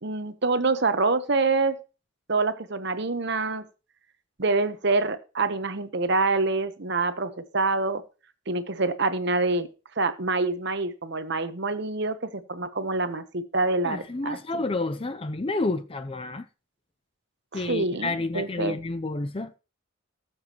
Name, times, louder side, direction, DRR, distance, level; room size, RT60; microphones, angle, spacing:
voice 1, 0.0-1.8 2.3-3.7 4.4-8.0 8.5-9.7 10.0-14.6 17.5-18.8, right 3 dB, 55° right, 1.0 m, -26 dB
voice 2, 13.8-16.5 17.5-19.5, left 2 dB, 25° left, 0.5 m, -30 dB
19.0 x 7.3 x 3.0 m
head